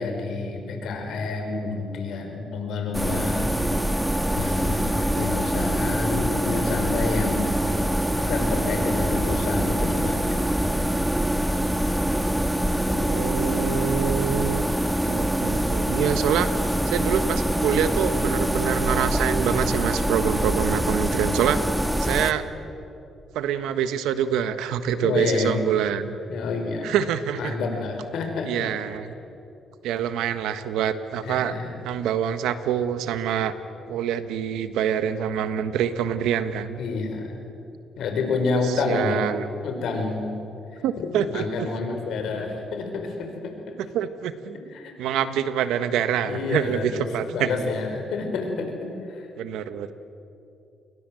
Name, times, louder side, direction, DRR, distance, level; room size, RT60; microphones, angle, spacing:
voice 1, 0.0-3.5 4.3-7.5 8.1-10.5 25.0-25.6 26.3-27.0 27.4-29.0 31.2-31.7 36.8-37.4 38.0-39.3 39.6-40.3 40.7-43.8 44.7-44.9 46.3-49.3, left 4 dB, 75° left, 4 dB, 5.3 m, -29 dB
sound 1, 2.9-22.3, right 1 dB, 5° right, 1.6 m, -24 dB
voice 2, 12.8-21.6 22.0-22.4 23.3-26.2 26.8-27.6 28.4-29.1 29.8-31.5 31.8-33.5 33.9-36.8 38.5-39.5 40.8-41.7 43.9-44.6 45.0-47.6 49.4-49.9, right 9 dB, 90° right, 11 dB, 1.4 m, -26 dB
29.5 x 22.5 x 7.8 m, 2.7 s
cardioid pair, 90°, 0 cm